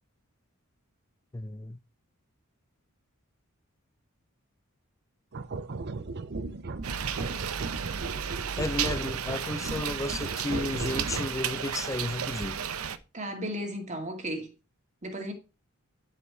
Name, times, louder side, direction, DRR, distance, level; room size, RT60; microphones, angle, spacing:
voice 1, 1.3-1.8 8.6-12.6, left 2 dB, 15° left, 0.4 m, -33 dB
sound 1, 5.3-11.5, right 3 dB, 50° right, 0.7 m, -37 dB
sound 2, 6.8-13.0, right 8 dB, 90° right, 0.8 m, -33 dB
voice 2, 13.1-14.5 15.0-15.3, equal, 35° right, 2.2 m, -34 dB
10.5 x 5.0 x 4.8 m
head